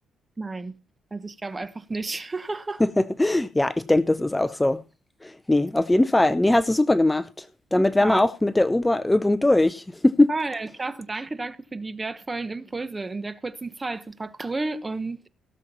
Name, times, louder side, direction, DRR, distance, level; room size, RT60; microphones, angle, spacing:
voice 1, 0.4-0.7 1.1-2.8 7.8-8.2 10.3-15.3, right 3 dB, 20° right, 1.2 m, -32 dB
voice 2, 2.8-4.8 5.2-7.5 7.7-10.3, left 1 dB, 10° left, 0.5 m, -21 dB
17.0 x 7.4 x 4.2 m
cardioid pair, 90°, 0 cm